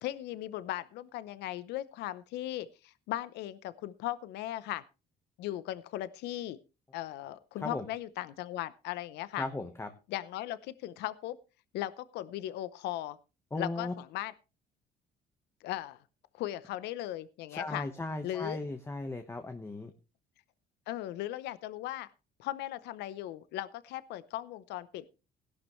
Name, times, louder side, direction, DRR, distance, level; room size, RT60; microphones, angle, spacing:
voice 1, 0.0-4.8 5.4-6.6 6.9-9.5 10.1-11.4 11.7-13.2 13.6-14.3 15.6-16.0 16.3-17.9 18.2-18.6 20.9-22.1 22.4-25.1, left 14 dB, 85° left, 16 dB, 0.7 m, -38 dB
voice 2, 9.4-9.9 13.5-13.9 17.5-19.9, left 2 dB, 15° left, 6 dB, 1.2 m, -37 dB
16.5 x 11.5 x 3.1 m, 0.30 s
cardioid pair, 110°, 17 cm